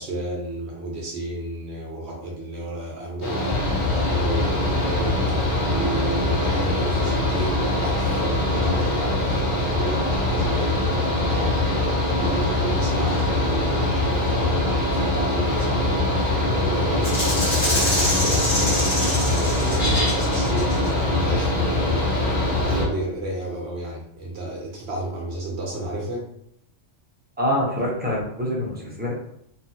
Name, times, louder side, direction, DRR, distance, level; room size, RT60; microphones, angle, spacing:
voice 1, 0.0-11.5 12.2-16.0 16.4-22.0 22.6-26.3, right 1 dB, 65° right, -1 dB, 0.8 m, -32 dB
Mechanical fan, 3.2-22.8, left 2 dB, 60° left, 1.2 m, -22 dB
Rattle (instrument), 17.0-20.9, left 1 dB, 35° left, 1.0 m, -26 dB
voice 2, 27.4-29.1, equal, 10° right, -5 dB, 0.5 m, -25 dB
2.9 x 2.4 x 2.7 m, 0.74 s
omnidirectional pair, 1.3 m